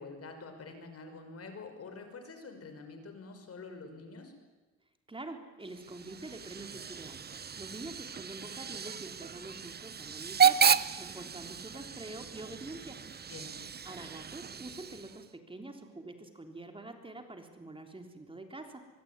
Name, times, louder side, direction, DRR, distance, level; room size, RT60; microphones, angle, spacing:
voice 1, 0.0-4.3 13.3-13.6, left 3 dB, 50° left, 6 dB, 6.1 m, -46 dB
voice 2, 5.1-10.7 11.0-13.0 13.8-18.9, right 2 dB, 15° right, 5 dB, 3.6 m, -46 dB
Hiss / Train / Alarm, 5.7-15.3, right 7 dB, 35° right, 0.9 m, -32 dB
23.5 x 23.5 x 9.8 m, 1.2 s
cardioid pair, 90°, 30 cm